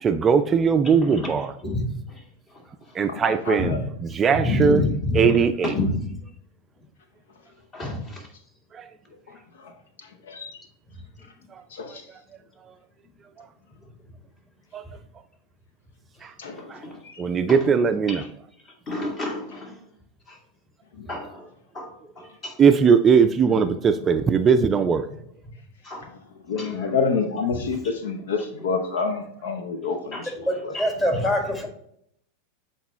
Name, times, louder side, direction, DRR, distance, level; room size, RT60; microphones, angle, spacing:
voice 1, 0.0-1.5 2.9-4.8 5.1-5.7 8.7-8.9 11.5-11.6 11.9-12.2 13.4-13.5 14.7-14.9 16.2-16.3 16.7-16.8 17.2-18.2 22.6-25.1, right 6 dB, 25° right, 9 dB, 0.4 m, -20 dB
voice 2, 0.8-1.5 2.1-3.0 5.3-5.7 7.7-8.4 16.1-17.0 17.5-17.7 18.1-18.3 18.6-20.0 20.3-20.4 21.1-22.6 25.8-26.1 26.5-26.8 27.7-28.7 29.0-29.1 29.8-30.6, left 1 dB, 35° left, 1 dB, 2.2 m, -37 dB
voice 3, 3.5-3.8 10.3-10.5 11.7-12.0 16.4-16.7 26.5-30.0, left 5 dB, 75° left, 6 dB, 0.7 m, -27 dB
voice 4, 4.4-5.3 7.8-7.9 27.5-27.7 30.5-31.7, left 1 dB, 15° left, 2 dB, 1.7 m, -24 dB
8.0 x 4.1 x 3.0 m, 0.70 s
hypercardioid pair, 95°, 0 cm